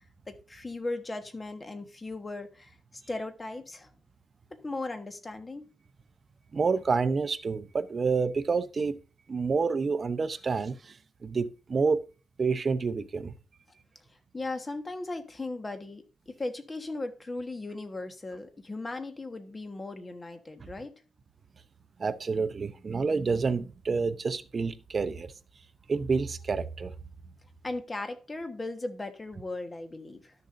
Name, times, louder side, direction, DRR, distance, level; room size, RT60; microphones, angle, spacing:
voice 1, 0.0-2.8 3.1-3.9 4.5-5.7 14.3-20.9 27.6-30.3, left 2 dB, 25° left, 1.3 m, -37 dB
voice 2, 6.5-9.0 9.3-12.0 12.4-13.3 22.0-25.3 25.9-26.9, right 4 dB, 40° right, 0.7 m, -28 dB
13.0 x 6.7 x 2.6 m
cardioid pair, 115°, 0 cm